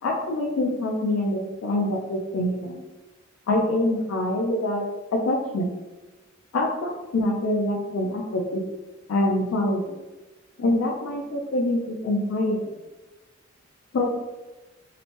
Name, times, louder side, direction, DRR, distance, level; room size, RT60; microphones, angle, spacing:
voice 1, 0.0-2.8 3.5-4.8 5.1-5.7 6.5-8.6 9.1-10.0 10.6-12.6 13.9-14.1, left 1 dB, 90° left, -2 dB, 0.4 m, -25 dB
2.8 x 2.1 x 3.0 m, 1.1 s
head